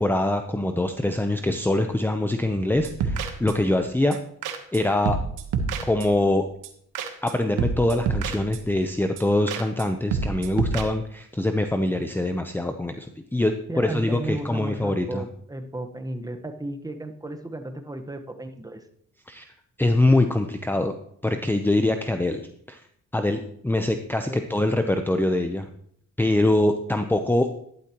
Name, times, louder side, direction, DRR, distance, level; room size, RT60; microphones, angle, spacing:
voice 1, 0.0-4.2 4.7-5.2 5.9-6.5 7.2-15.2 19.3-19.5 19.8-20.9 21.2-22.4 22.7-22.8 23.1-25.7 26.2-27.5, left 1 dB, 5° left, 6 dB, 0.8 m, -24 dB
sound 1, 2.7-3.8 4.1-4.2 4.4-4.8 5.1-6.3 6.6-6.7 6.9-7.3 7.6-8.8 9.2-9.3 9.5-9.9 10.1-10.8, right 5 dB, 85° right, 1.4 m, -29 dB
voice 2, 13.7-18.8 24.2-24.4, right 2 dB, 10° right, 6 dB, 1.3 m, -34 dB
12.0 x 11.5 x 3.1 m, 0.68 s
cardioid pair, 90°, 30 cm